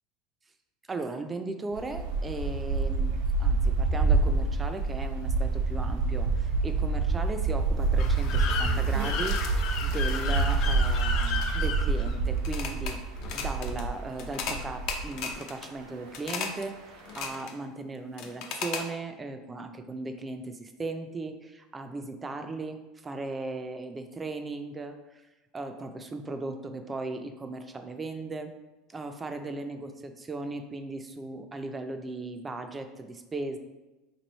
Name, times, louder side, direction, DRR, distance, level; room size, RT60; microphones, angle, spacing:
voice 1, 0.9-3.1 3.4-13.0 13.3-25.2 25.5-28.5 28.9-33.6, right 2 dB, 15° right, 6 dB, 0.3 m, -37 dB
sound 1, 1.7-15.3, right 3 dB, 90° right, 0.6 m, -27 dB
sound 2, 8.0-12.9 13.2-13.8 14.2-14.6 14.9-15.7 16.1-16.6 17.0-17.6 18.2-18.8, left 5 dB, 55° left, 0.5 m, -34 dB
3.1 x 2.6 x 4.1 m, 1.1 s
supercardioid pair, 135°, 0 cm